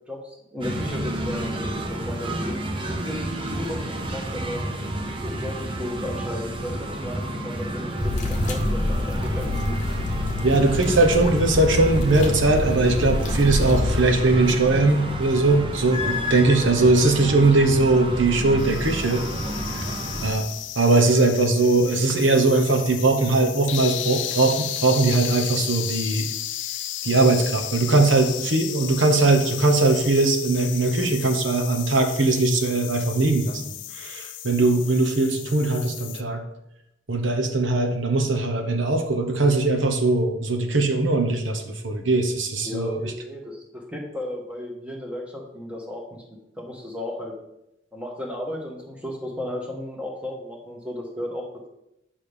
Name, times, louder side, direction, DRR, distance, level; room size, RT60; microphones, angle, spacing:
voice 1, 0.1-2.6 2.9-4.6 5.2-9.5 42.6-46.2 46.6-47.3 47.9-51.4, left 1 dB, 5° right, 0 dB, 1.3 m, -34 dB
sound 1, 0.6-20.3, right 1 dB, 25° right, 0.7 m, -30 dB
sound 2, 8.0-14.0, left 2 dB, 40° left, 0.8 m, -27 dB
voice 2, 10.4-19.2 19.5-19.8 20.2-20.5 20.8-26.3 27.0-36.4 37.1-43.1, right 2 dB, 85° right, 4 dB, 1.0 m, -20 dB
sound 3, 18.6-36.2, left 12 dB, 75° left, 0.5 m, -34 dB
8.7 x 5.4 x 3.4 m, 0.84 s
head